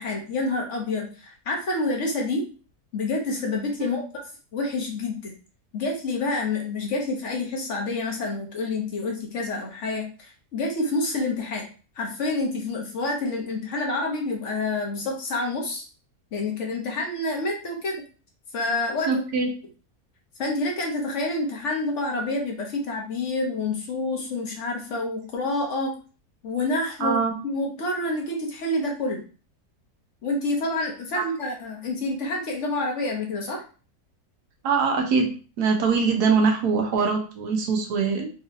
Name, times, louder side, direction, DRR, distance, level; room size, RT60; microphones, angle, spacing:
voice 1, 0.0-2.5 2.9-4.0 4.5-5.3 5.7-11.6 12.0-15.8 16.3-18.0 18.5-19.2 20.4-25.9 26.4-27.2 27.4-29.2 30.2-33.6, left 2 dB, 55° left, 0 dB, 1.0 m, -28 dB
voice 2, 19.1-19.5 27.0-27.3 31.1-31.2 34.6-35.3 35.6-38.3, right 5 dB, 90° right, 2 dB, 1.3 m, -23 dB
3.9 x 2.7 x 2.5 m, 0.37 s
omnidirectional pair, 1.6 m